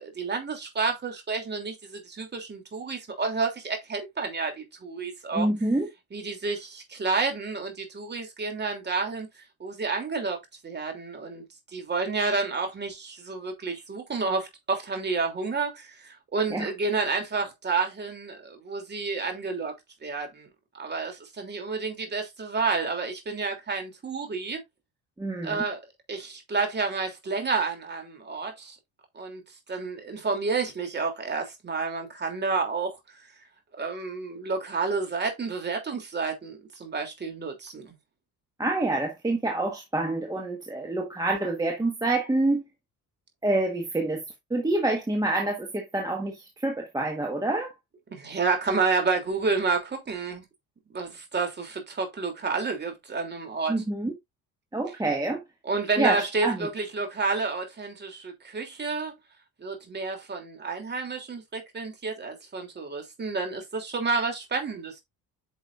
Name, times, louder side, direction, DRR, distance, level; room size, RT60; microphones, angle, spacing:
voice 1, 0.0-5.5 6.1-9.3 9.6-10.4 10.6-11.4 11.7-19.7 20.0-20.5 20.7-24.6 25.4-25.8 26.1-28.8 29.1-29.4 29.7-33.0 33.8-37.9 48.1-50.4 50.9-53.7 55.6-59.1 59.6-65.0, right 4 dB, 30° right, 3.0 m, -30 dB
voice 2, 5.3-5.9 16.5-16.7 25.2-25.6 38.6-42.6 43.4-44.2 44.5-47.7 53.7-54.1 54.7-55.4 56.0-56.7, right 2 dB, 10° right, 1.4 m, -27 dB
9.1 x 6.0 x 2.5 m
cardioid pair, 135°, 36 cm